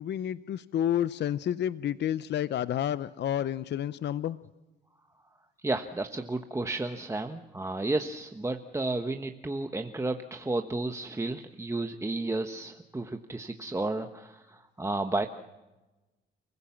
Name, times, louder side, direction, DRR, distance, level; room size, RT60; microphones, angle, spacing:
voice 1, 0.0-4.4, left 10 dB, 60° left, 15 dB, 0.7 m, -30 dB
voice 2, 5.6-15.3, right 2 dB, 15° right, 6 dB, 1.2 m, -32 dB
29.5 x 16.5 x 7.3 m, 1.1 s
cardioid pair, 90°, 20 cm